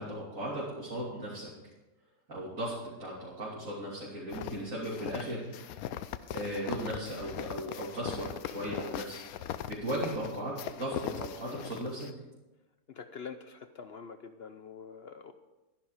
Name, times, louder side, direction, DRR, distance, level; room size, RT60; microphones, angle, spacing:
voice 1, 0.0-1.5 2.3-2.7 3.0-5.8 6.3-12.1, right 1 dB, 60° right, -7 dB, 3.4 m, -37 dB
sound 1, 4.3-12.1, left 10 dB, 75° left, 1.0 m, -40 dB
voice 2, 12.9-15.3, left 6 dB, 60° left, 9 dB, 0.7 m, -45 dB
12.5 x 11.0 x 4.9 m, 1.1 s
omnidirectional pair, 1.6 m